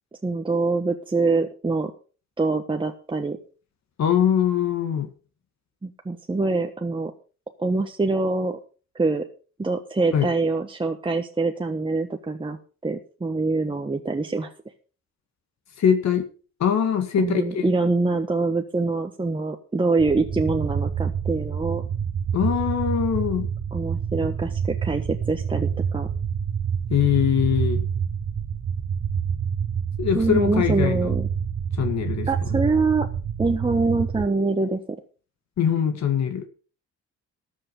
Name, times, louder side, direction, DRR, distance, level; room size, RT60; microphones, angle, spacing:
voice 1, 0.2-1.9 2.4-3.4 5.8-7.1 7.6-8.6 8.9-9.3 9.6-12.6 12.8-14.5 17.2-21.8 23.7-26.1 30.1-31.3 32.3-33.1 33.4-35.0, right 3 dB, 15° right, 4 dB, 1.3 m, -24 dB
voice 2, 4.0-5.1 10.1-10.3 15.8-16.2 16.6-17.6 22.3-23.5 26.9-27.8 30.0-31.1 31.8-32.5 35.6-36.5, left 8 dB, 65° left, 7 dB, 2.0 m, -22 dB
sound 1, 20.0-34.3, right 7 dB, 45° right, 1.5 m, -27 dB
13.5 x 7.9 x 5.4 m, 0.37 s
cardioid pair, 90°, 30 cm